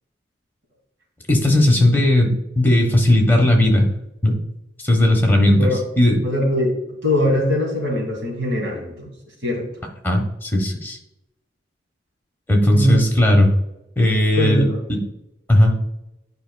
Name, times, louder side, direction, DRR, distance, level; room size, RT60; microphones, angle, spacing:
voice 1, 1.3-3.9 4.2-4.4 4.8-5.7 6.0-6.2 10.0-11.0 12.5-13.5 14.0-14.6 14.9-15.0 15.5-15.8, left 1 dB, 10° left, 1 dB, 1.0 m, -16 dB
voice 2, 5.5-5.8 6.2-9.1 9.4-9.7 12.7-13.0 14.3-14.8, equal, 80° right, 1 dB, 2.3 m, -21 dB
10.0 x 5.4 x 2.2 m, 0.86 s
head